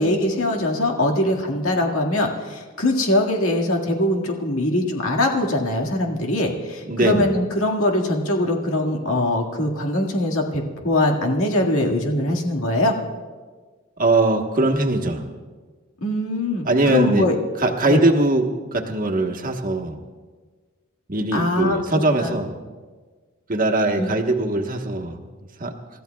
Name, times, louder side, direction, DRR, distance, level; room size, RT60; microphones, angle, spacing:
voice 1, 0.0-12.9 16.0-17.4 17.8-18.0 21.3-21.8 22.2-22.3 24.0-24.1, left 1 dB, 90° left, 1 dB, 1.9 m, -22 dB
voice 2, 6.9-7.3 14.0-15.2 16.6-17.2 17.6-20.0 21.1-22.5 23.5-25.2 25.6-25.7, right 2 dB, 40° right, 2 dB, 1.2 m, -21 dB
29.5 x 14.0 x 2.3 m, 1.4 s
head